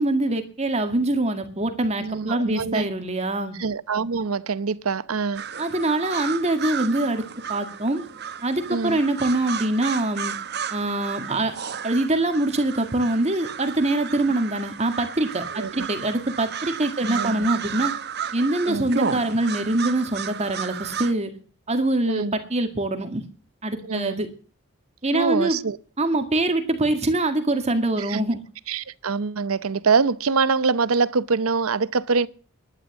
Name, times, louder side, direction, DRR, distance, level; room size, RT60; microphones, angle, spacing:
voice 1, 0.0-3.6 5.6-7.2 7.5-8.1 8.4-10.3 10.7-11.6 11.8-18.0 18.3-21.3 21.7-23.2 23.6-24.3 25.0-25.6 26.0-28.4, right 2 dB, 30° right, 1.9 m, -24 dB
voice 2, 2.0-2.9 3.6-5.4 8.7-9.0 15.6-15.9 17.0-17.5 18.7-18.9 22.1-22.3 23.8-24.2 25.1-25.8 28.0-28.2 28.7-32.3, right 4 dB, 85° right, 0.8 m, -24 dB
sound 1, 5.3-21.1, right 6 dB, 50° right, 1.1 m, -33 dB
11.5 x 10.5 x 7.1 m
head